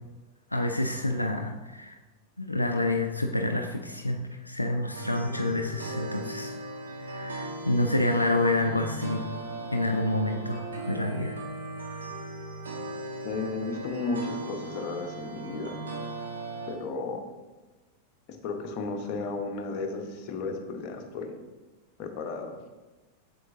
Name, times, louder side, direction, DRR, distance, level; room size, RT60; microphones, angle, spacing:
voice 1, 0.5-2.0 2.4-6.6 7.0-9.2 9.7-11.4, left 2 dB, 85° left, 4 dB, 0.5 m, -28 dB
sound 1, 4.9-16.7, right 2 dB, 70° right, 1.4 m, -38 dB
voice 2, 13.2-15.8 16.7-17.2 18.3-21.3 22.0-22.6, left 3 dB, 40° left, 3 dB, 1.1 m, -34 dB
7.8 x 7.2 x 2.7 m, 1.2 s
figure-of-eight pair, 90°, 0 cm